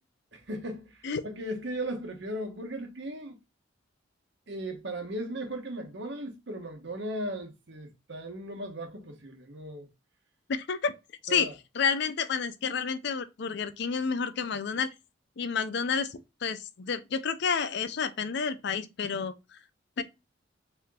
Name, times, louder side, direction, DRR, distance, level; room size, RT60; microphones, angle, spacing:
voice 1, 0.3-3.4 4.5-9.9 11.3-11.5, right 1 dB, 65° right, 1.2 m, -37 dB
voice 2, 10.5-10.9 11.2-11.5 11.8-14.9 15.4-19.3 20.0-20.1, left 6 dB, 60° left, 0.5 m, -30 dB
4.3 x 3.5 x 2.3 m
head